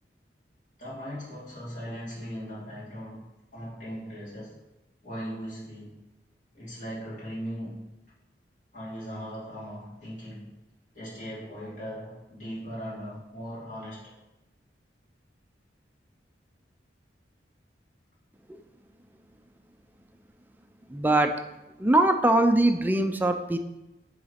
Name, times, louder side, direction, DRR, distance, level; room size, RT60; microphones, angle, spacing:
voice 1, 0.8-3.2 3.5-4.6 5.0-6.0 6.5-7.9 8.7-10.6 10.9-14.1, equal, 45° left, -8 dB, 2.9 m, -39 dB
voice 2, 20.9-21.3 21.8-23.6, right 1 dB, 10° right, 6 dB, 0.4 m, -22 dB
7.8 x 4.0 x 5.7 m, 0.98 s
head